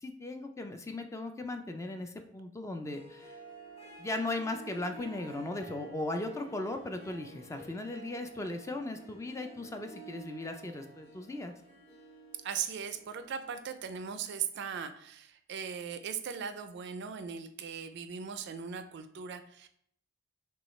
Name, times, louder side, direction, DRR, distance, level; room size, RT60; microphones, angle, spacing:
voice 1, 0.0-3.4 4.0-11.5, left 2 dB, 15° left, 6 dB, 0.3 m, -37 dB
Harp, 2.7-13.9, right 3 dB, 30° left, 1.0 m, -51 dB
voice 2, 12.4-19.7, right 7 dB, 60° right, 10 dB, 0.4 m, -39 dB
5.9 x 2.3 x 3.1 m, 0.67 s
head